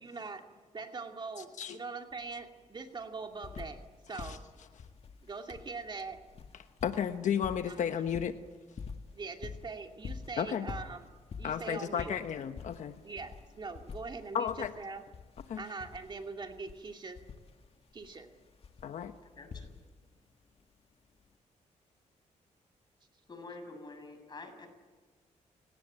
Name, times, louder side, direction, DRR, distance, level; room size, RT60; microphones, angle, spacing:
voice 1, 0.0-0.4 0.7-3.8 4.1-4.4 5.2-6.2 7.7-7.8 9.1-11.0 11.4-12.1 13.0-15.0 15.6-17.2 17.9-18.3, right 4 dB, 35° right, 4 dB, 2.5 m, -42 dB
voice 2, 1.4-1.8 4.1-4.4 6.8-8.4 10.4-10.7 11.4-13.0 14.3-14.7 15.5-15.6 18.8-19.1, left 8 dB, 70° left, 8 dB, 1.1 m, -33 dB
sound 1, 2.1-2.2 2.5-3.9 4.2-20.1 21.2-21.3, left 5 dB, 50° left, 1.9 m, -47 dB
voice 3, 19.2-19.7 23.3-24.7, left 3 dB, 35° left, 6 dB, 7.3 m, -47 dB
30.0 x 17.5 x 9.0 m, 1.4 s
cardioid pair, 105°, 13 cm